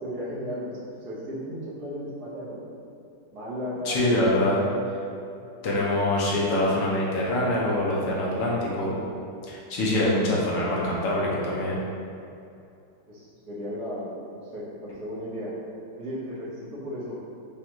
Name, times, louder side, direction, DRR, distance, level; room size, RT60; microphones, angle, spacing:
voice 1, 0.0-2.6 3.3-4.0 4.6-4.8 13.1-15.5 16.0-17.2, equal, 70° right, -9 dB, 1.5 m, -35 dB
voice 2, 3.8-4.6 5.6-8.9 9.5-11.8, left 1 dB, 85° left, -5 dB, 1.4 m, -24 dB
5.2 x 2.4 x 2.9 m, 2.6 s
omnidirectional pair, 1.8 m